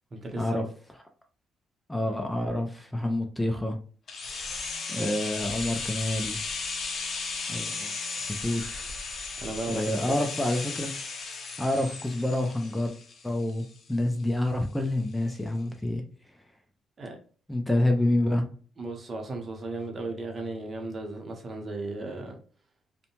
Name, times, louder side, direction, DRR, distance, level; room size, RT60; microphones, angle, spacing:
voice 1, 0.1-0.7 9.4-10.2 17.0-17.2 18.8-22.4, right 2 dB, 40° right, 0.8 m, -35 dB
voice 2, 1.9-3.8 4.9-6.4 7.5-7.9 8.4-8.9 9.7-10.9 11.6-12.9 13.2-16.0 17.5-18.4, left 1 dB, 10° left, 0.4 m, -28 dB
sound 1, 4.1-13.9 14.2-14.3, left 4 dB, 55° left, 0.6 m, -35 dB
2.6 x 2.1 x 2.8 m
cardioid pair, 90°, 0 cm